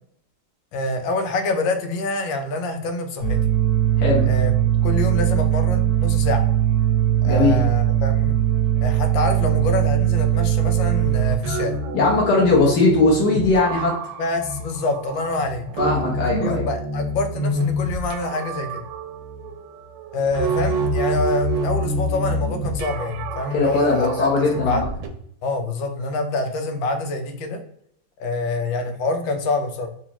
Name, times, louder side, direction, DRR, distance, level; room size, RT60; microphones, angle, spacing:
voice 1, 0.7-3.4 4.3-4.5 4.8-6.4 7.2-8.4 8.8-11.8 14.2-15.6 16.3-18.8 20.1-24.8 25.4-27.6 28.2-29.9, left 2 dB, 90° left, 5 dB, 1.4 m, -26 dB
sound 1, 3.2-11.4, right 12 dB, 40° left, 1.4 m, -19 dB
voice 2, 7.2-7.6 11.9-14.0 15.8-16.6 23.5-24.8, left 3 dB, 65° left, -4 dB, 1.4 m, -19 dB
sound 2, 11.2-25.1, right 1 dB, 75° right, 1.2 m, -27 dB
4.0 x 2.4 x 2.8 m, 0.70 s
omnidirectional pair, 2.0 m